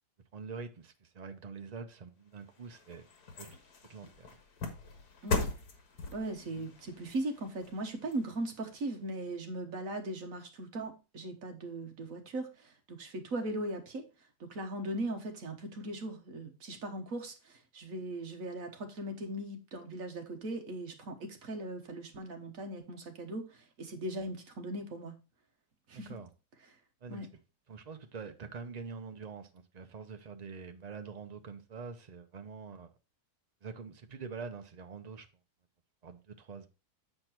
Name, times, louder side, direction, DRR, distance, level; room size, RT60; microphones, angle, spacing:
voice 1, 0.3-3.0 3.4-3.5 3.9-4.3 26.1-26.3 27.0-27.3 27.7-32.9 33.6-35.3 36.0-36.7, right 5 dB, 75° right, 0.3 m, -45 dB
sound 1, 2.3-8.8 9.3-9.4, left 3 dB, 70° left, 1.9 m, -40 dB
voice 2, 6.1-14.0 14.4-25.1 25.9-26.2 27.1-27.3, right 1 dB, 60° right, 1.6 m, -39 dB
7.7 x 4.5 x 4.4 m
omnidirectional pair, 1.7 m